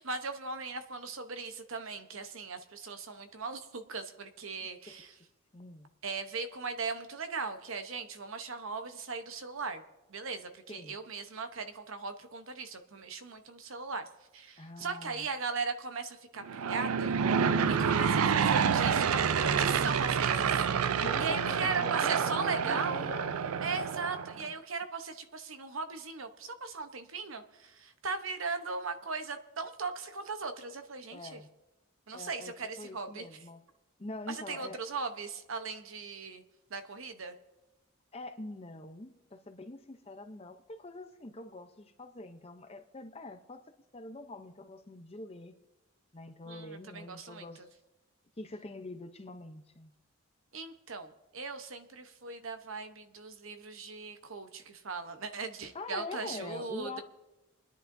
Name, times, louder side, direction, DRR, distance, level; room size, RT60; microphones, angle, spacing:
voice 1, 0.0-5.1 6.0-9.8 10.1-14.1 14.3-17.1 17.7-23.1 23.6-31.4 32.1-33.3 34.3-36.4 36.7-37.3 46.5-47.4 50.5-57.0, right 4 dB, 70° right, 8 dB, 0.9 m, -38 dB
voice 2, 5.5-5.9 10.7-10.9 14.6-15.3 21.0-23.3 24.4-24.5 31.1-31.5 32.1-32.5 32.8-33.6 34.0-34.8 38.1-43.6 43.9-45.5 46.1-47.7 48.4-49.9 55.7-57.0, left 2 dB, 30° left, 7 dB, 0.7 m, -44 dB
Aircraft / Engine, 16.4-24.4, right 6 dB, 90° right, 0.5 m, -28 dB
29.5 x 10.5 x 2.7 m, 1.0 s
head